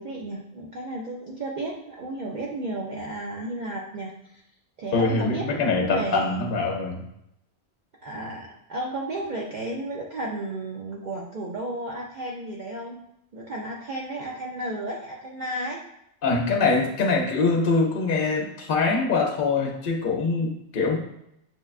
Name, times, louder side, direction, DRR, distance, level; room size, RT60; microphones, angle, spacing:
voice 1, 0.0-4.4 4.8-6.3 8.0-13.0 13.3-15.8, right 2 dB, 60° right, -2 dB, 0.5 m, -33 dB
voice 2, 4.9-7.0 16.2-21.0, left 3 dB, 55° left, 0 dB, 0.7 m, -23 dB
6.2 x 2.2 x 2.3 m, 0.78 s
omnidirectional pair, 1.2 m